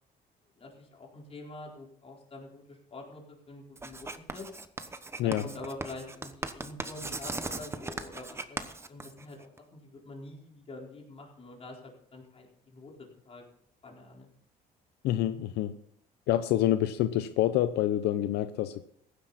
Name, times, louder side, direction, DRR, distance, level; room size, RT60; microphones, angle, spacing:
voice 1, 0.5-4.5 5.0-8.6 8.8-12.9 13.3-13.4 13.8-14.3, left 2 dB, 35° left, -1 dB, 4.5 m, -46 dB
Writing, 3.8-9.6, right 3 dB, 15° right, 1.0 m, -38 dB
voice 2, 15.0-15.7 16.3-18.8, left 12 dB, 80° left, 10 dB, 0.7 m, -27 dB
15.5 x 11.5 x 4.2 m, 0.67 s
cardioid pair, 110°, 17 cm